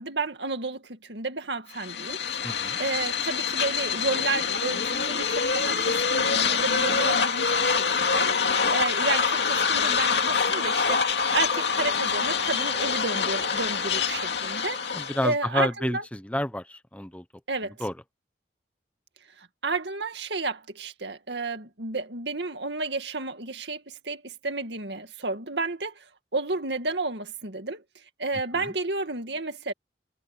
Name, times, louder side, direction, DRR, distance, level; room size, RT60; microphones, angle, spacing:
voice 1, 0.0-11.0 11.3-16.0 17.5-17.8 19.4-26.1 26.3-27.8 28.2-29.7, right 3 dB, 75° right, 2.2 m, -32 dB
sound 1, 1.8-15.3, left 5 dB, 70° left, 2.4 m, -25 dB
voice 2, 2.4-2.8 14.9-17.2 17.8-17.9, left 1 dB, 10° left, 0.8 m, -29 dB
head